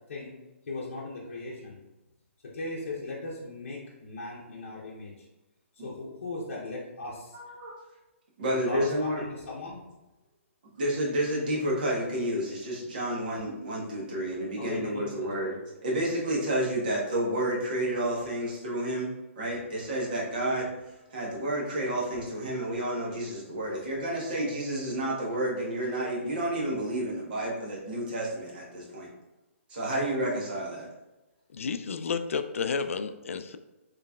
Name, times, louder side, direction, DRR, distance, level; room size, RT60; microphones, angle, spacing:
voice 1, 0.7-1.8 2.5-5.1 5.8-7.4 8.5-9.8 14.6-15.5, left 3 dB, 60° left, -6 dB, 0.8 m, -38 dB
voice 2, 7.3-7.7 8.4-9.2 10.8-15.5 15.8-20.7 21.1-29.1 29.7-30.9, right 1 dB, 40° right, -4 dB, 1.1 m, -30 dB
voice 3, 31.5-33.6, left 5 dB, 75° left, 10 dB, 0.3 m, -31 dB
3.9 x 3.2 x 2.3 m, 1.1 s
hypercardioid pair, 175°, 7 cm